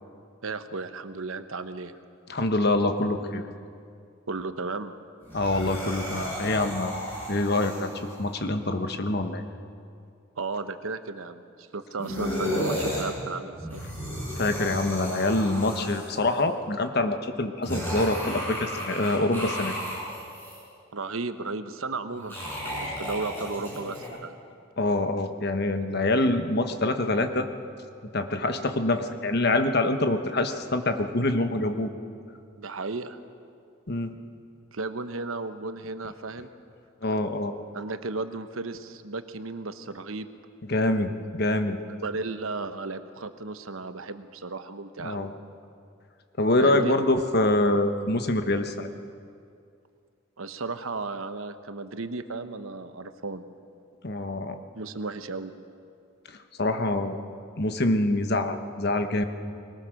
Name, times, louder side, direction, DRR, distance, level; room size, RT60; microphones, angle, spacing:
voice 1, 0.4-1.9 4.3-4.9 10.4-11.4 11.7-13.8 20.9-24.4 32.6-33.2 34.7-36.5 37.7-40.3 42.0-45.3 46.6-46.9 50.4-53.4 54.8-55.5, right 3 dB, 80° right, 10 dB, 1.0 m, -34 dB
voice 2, 2.3-3.4 5.3-7.0 7.3-7.9 8.2-9.4 14.4-19.7 24.8-27.5 28.1-31.9 33.9-34.1 37.0-37.5 40.7-41.8 45.0-45.3 46.4-48.9 54.0-54.5 56.3-57.2 57.6-59.2, left 2 dB, 50° left, 7 dB, 1.2 m, -25 dB
sound 1, 5.2-8.3 12.0-13.0 13.5-16.3 17.6-20.6 22.1-24.1, equal, 10° left, 6.3 m, -33 dB
21.5 x 19.5 x 6.5 m, 2.4 s
head